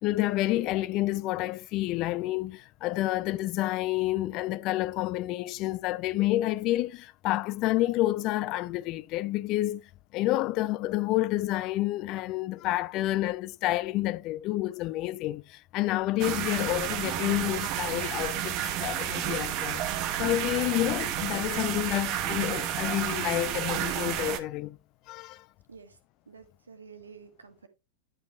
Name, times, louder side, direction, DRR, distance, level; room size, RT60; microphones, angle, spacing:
voice 1, 0.0-9.8 10.1-19.9 20.2-24.8 25.1-25.5, left 16 dB, 40° left, 0.3 m, -29 dB
sound 1, 16.2-24.4, right 11 dB, 40° right, 0.9 m, -31 dB
voice 2, 26.3-27.7, right 6 dB, 75° right, 1.3 m, -50 dB
9.8 x 5.1 x 3.1 m
figure-of-eight pair, 90°, 0 cm